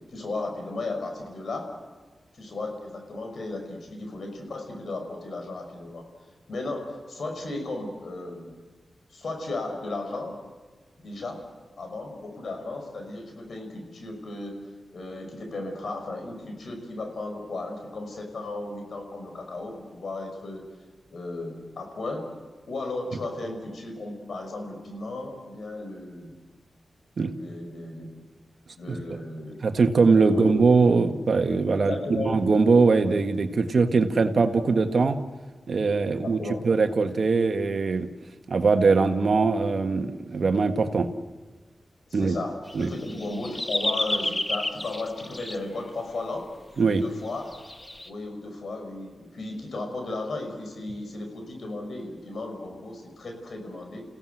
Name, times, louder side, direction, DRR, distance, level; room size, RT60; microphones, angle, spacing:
voice 1, 0.1-1.7 2.4-6.1 6.5-8.5 9.1-10.4 11.0-11.4 11.8-14.6 14.9-20.6 21.1-22.3 22.7-26.3 27.3-28.1 28.8-29.5 30.3-30.5 31.8-32.4 36.1-36.6 42.1-46.5 46.8-47.6 48.1-54.0, left 2 dB, 70° left, 4 dB, 5.6 m, -35 dB
voice 2, 29.6-35.2 35.7-38.1 38.5-41.1 42.1-42.3 42.7-42.9 46.8-47.0, right 4 dB, 65° right, 7 dB, 1.6 m, -21 dB
sound 1, 42.7-45.6 46.7-46.8 47.5-48.1, left 1 dB, 25° left, 1.5 m, -30 dB
29.0 x 16.5 x 8.0 m, 1.4 s
cardioid pair, 45°, 0 cm